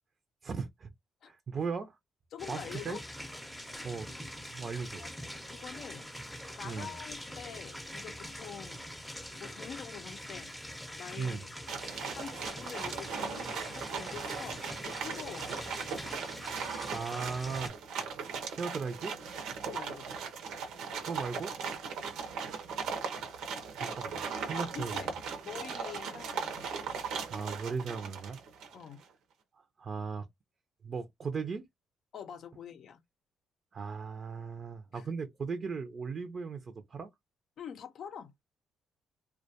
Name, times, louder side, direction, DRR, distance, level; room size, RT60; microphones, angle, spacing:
voice 1, 0.4-0.9 1.3-2.0 2.5-3.0 3.8-4.1 4.5-5.1 6.6-6.9 11.2-11.4 16.9-17.7 18.5-19.1 21.0-21.5 23.8-25.1 27.2-28.4 29.5-30.3 30.8-31.6 33.7-37.1, right 5 dB, 45° right, 0.4 m, -37 dB
voice 2, 2.3-3.0 5.0-5.1 5.5-6.1 6.6-8.8 9.4-10.5 11.0-11.5 12.1-15.5 19.6-20.1 24.5-25.1 25.4-26.7 28.7-29.0 32.1-33.0 34.9-35.1 37.6-38.3, left 8 dB, 65° left, 0.4 m, -45 dB
sound 1, 2.4-17.7, equal, 5° left, 0.5 m, -44 dB
sound 2, 11.7-28.8, right 6 dB, 85° right, 0.6 m, -38 dB
2.2 x 2.1 x 2.7 m
cardioid pair, 90°, 0 cm